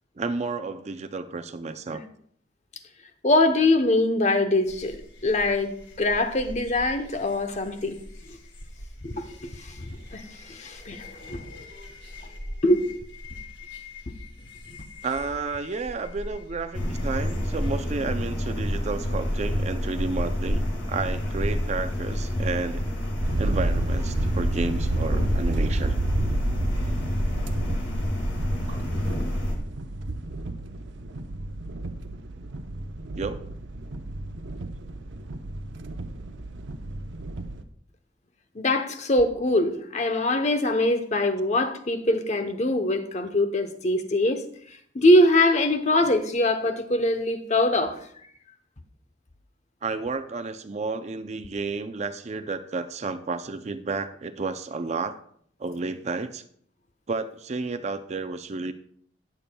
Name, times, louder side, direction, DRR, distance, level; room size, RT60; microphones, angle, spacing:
voice 1, 0.2-2.0 15.0-22.8 23.4-26.0 28.7-28.8 33.2-33.4 49.8-55.2 55.6-56.4 57.1-58.7, right 3 dB, 35° right, 0.4 m, -31 dB
voice 2, 3.2-8.0 8.3-8.4 9.0-10.2 10.5-11.5 12.6-12.8 38.5-44.4 44.9-48.0, left 1 dB, 40° left, 0.8 m, -23 dB
sound 1, 4.6-17.8, left 1 dB, 90° left, 1.9 m, -43 dB
sound 2, 16.7-29.5, equal, 75° left, 2.0 m, -28 dB
sound 3, 23.2-37.6, right 2 dB, 80° right, 0.7 m, -31 dB
19.0 x 6.9 x 2.3 m
head